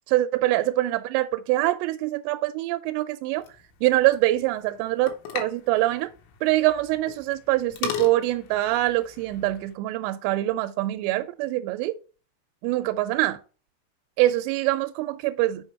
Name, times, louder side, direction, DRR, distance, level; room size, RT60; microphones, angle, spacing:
voice 1, 0.1-3.5 3.8-6.1 6.4-11.9 12.6-13.4 14.2-15.7, right 16 dB, 85° right, 2.7 m, -24 dB
sound 1, 3.3-9.7, left 8 dB, 85° left, 3.4 m, -38 dB
6.9 x 4.6 x 4.2 m
omnidirectional pair, 5.0 m